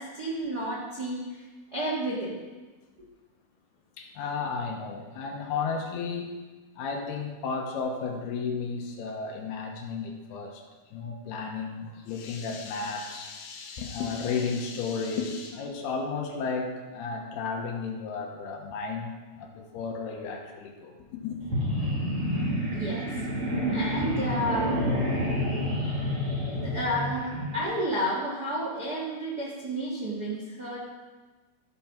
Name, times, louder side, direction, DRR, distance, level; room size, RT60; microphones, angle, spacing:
voice 1, 0.0-2.4 22.7-23.1 23.7-24.8 26.4-30.8, right 1 dB, 75° right, -6 dB, 0.9 m, -31 dB
voice 2, 4.0-6.3 6.8-10.6 10.9-19.1 19.4-20.9 21.2-21.4, left 5 dB, 75° left, 2 dB, 2.9 m, -33 dB
sound 1, 21.4-27.6, equal, 40° right, 2.8 m, -29 dB
14.5 x 5.4 x 6.0 m, 1.3 s
omnidirectional pair, 4.9 m